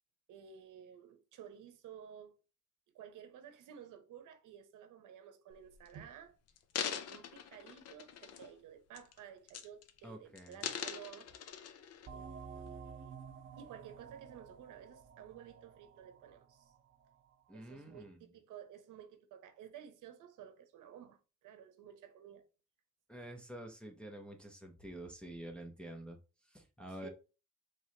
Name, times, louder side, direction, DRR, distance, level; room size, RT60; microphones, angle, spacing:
voice 1, 0.3-2.4 2.9-6.4 6.8-11.4 12.1-13.2 13.6-16.7 17.5-22.5 26.9-27.1, right 9 dB, 85° right, 0.8 m, -53 dB
sound 1, 5.5-5.9 6.5-8.6 8.9-9.2 9.5-10.0 10.4-12.1 12.7-12.8, left 8 dB, 55° left, 0.6 m, -42 dB
voice 2, 10.0-10.7 17.5-18.2 23.1-26.2 26.5-27.1, right 1 dB, 5° left, 0.6 m, -48 dB
sound 2, 12.1-17.3, right 5 dB, 40° right, 0.7 m, -52 dB
4.5 x 3.2 x 2.7 m
cardioid pair, 165°, 30 cm